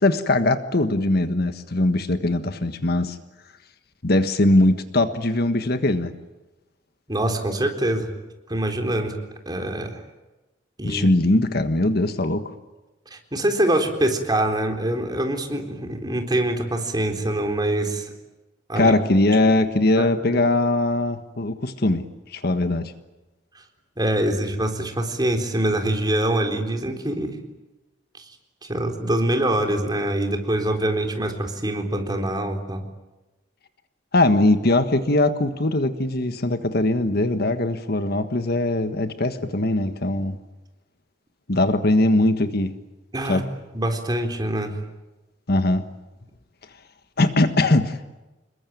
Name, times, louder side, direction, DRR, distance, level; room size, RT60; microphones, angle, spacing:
voice 1, 0.0-3.2 4.0-6.1 10.8-12.5 18.7-22.0 22.3-22.9 34.1-40.4 41.5-42.7 43.3-43.5 45.5-45.8 47.2-48.0, left 2 dB, 55° left, 9 dB, 1.5 m, -21 dB
voice 2, 7.1-8.1 8.5-9.1 9.5-10.0 10.8-11.0 13.1-18.1 18.7-18.9 20.0-20.4 24.0-27.4 28.2-28.3 28.6-32.8 43.1-43.4 43.7-44.7, right 1 dB, 25° right, 4 dB, 3.8 m, -24 dB
27.5 x 22.0 x 9.4 m, 1.1 s
head